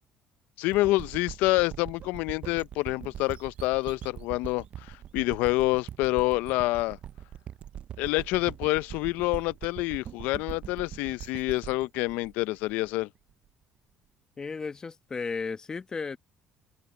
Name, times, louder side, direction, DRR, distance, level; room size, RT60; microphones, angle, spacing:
voice 1, 0.6-7.0 8.0-13.1, left 20 dB, 80° left, 0.5 m, -27 dB
sound 1, 0.7-13.3, right 10 dB, 50° right, 0.4 m, -42 dB
voice 2, 14.4-16.2, left 4 dB, 25° left, 1.3 m, -34 dB
cardioid pair, 105°, 3 cm